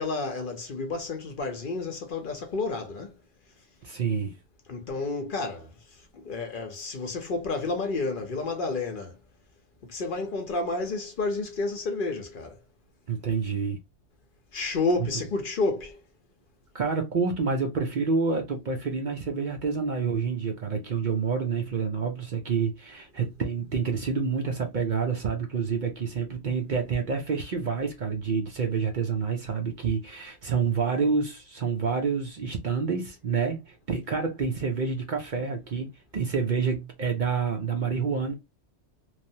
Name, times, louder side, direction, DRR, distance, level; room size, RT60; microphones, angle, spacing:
voice 1, 0.0-3.2 4.7-5.7 6.1-9.2 9.8-12.6 14.5-16.0, left 3 dB, 55° left, 0.7 m, -30 dB
voice 2, 3.8-4.3 13.1-13.8 15.0-15.1 16.7-38.3, right 5 dB, 55° right, 0.6 m, -28 dB
3.1 x 2.1 x 2.6 m
omnidirectional pair, 1.2 m